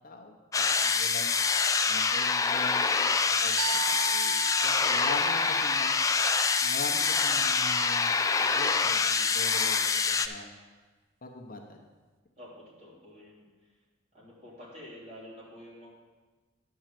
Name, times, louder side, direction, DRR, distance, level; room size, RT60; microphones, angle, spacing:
voice 1, 0.0-0.4 0.8-1.4 1.9-5.9 6.6-10.5 11.2-11.8, left 2 dB, 45° left, 3 dB, 0.8 m, -41 dB
sound 1, 0.5-10.3, left 5 dB, 15° left, 0.3 m, -26 dB
sound 2, 3.6-8.9, right 10 dB, 80° right, 0.5 m, -40 dB
voice 2, 12.4-13.4 14.1-15.9, left 1 dB, 35° right, -7 dB, 3.1 m, -48 dB
10.5 x 3.9 x 7.5 m, 1.3 s
head